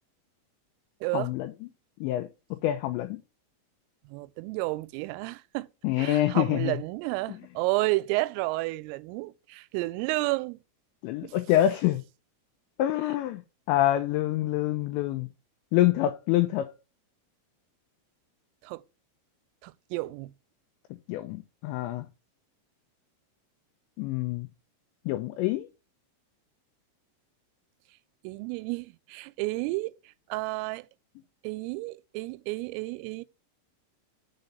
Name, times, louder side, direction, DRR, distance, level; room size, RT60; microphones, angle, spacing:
voice 1, 1.1-1.5 2.0-2.3 2.6-3.2 5.8-6.7 11.0-12.0 12.8-13.4 13.7-15.3 15.7-16.7 21.1-22.1 24.0-24.5 25.1-25.7, left 14 dB, 90° left, 2.5 m, -26 dB
voice 2, 4.1-5.7 6.0-10.6 11.2-11.3 18.6-18.8 19.6-20.3 28.2-30.0 30.3-30.9 31.4-33.2, right 21 dB, 85° right, 3.2 m, -31 dB
7.0 x 4.0 x 6.6 m
omnidirectional pair, 5.8 m